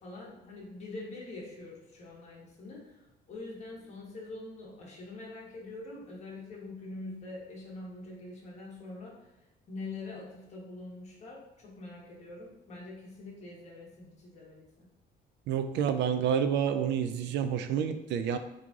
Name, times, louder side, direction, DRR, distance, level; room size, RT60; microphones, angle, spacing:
voice 1, 0.0-9.3 9.7-14.9, left 2 dB, 40° left, -3 dB, 1.1 m, -44 dB
voice 2, 15.5-18.4, right 8 dB, 75° right, 9 dB, 0.4 m, -29 dB
3.8 x 3.2 x 3.5 m, 0.99 s
cardioid pair, 180°, 18 cm